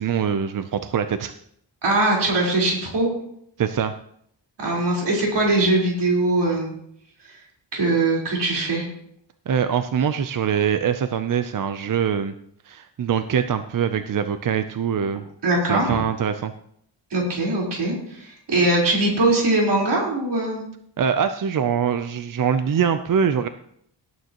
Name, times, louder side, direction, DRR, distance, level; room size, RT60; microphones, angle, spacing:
voice 1, 0.0-1.3 3.6-4.0 9.5-12.3 12.6-15.2 15.7-16.5 21.0-23.5, right 7 dB, 50° right, 9 dB, 0.6 m, -23 dB
voice 2, 1.8-3.1 4.6-6.7 7.7-8.8 15.4-15.9 17.1-20.7, right 2 dB, 70° right, -3 dB, 4.2 m, -21 dB
17.5 x 9.3 x 3.0 m, 0.69 s
wide cardioid pair, 130°, 43 cm